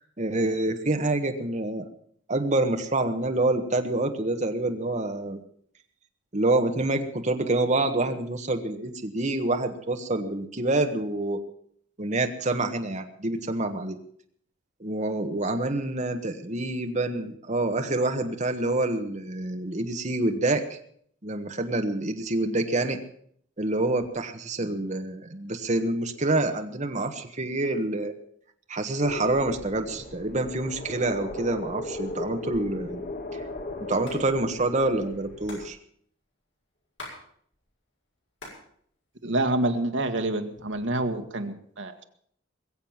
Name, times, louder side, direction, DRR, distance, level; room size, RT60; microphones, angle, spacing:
voice 1, 0.0-1.8 2.3-5.4 6.3-11.4 12.0-14.0 14.8-20.6 21.2-23.0 23.6-28.1 28.7-33.0 33.9-35.8, right 2 dB, 40° right, 5 dB, 1.5 m, -27 dB
sound 1, 29.0-35.7, left 2 dB, 45° left, 1.5 m, -37 dB
Hands, 33.8-34.2 34.5-34.6 34.8-37.2 37.5-38.7 39.0-39.8 40.4-41.0, left 2 dB, 70° left, 6.8 m, -44 dB
voice 2, 39.2-42.0, right 2 dB, 70° right, 5 dB, 1.6 m, -27 dB
21.5 x 7.8 x 7.3 m, 0.64 s
head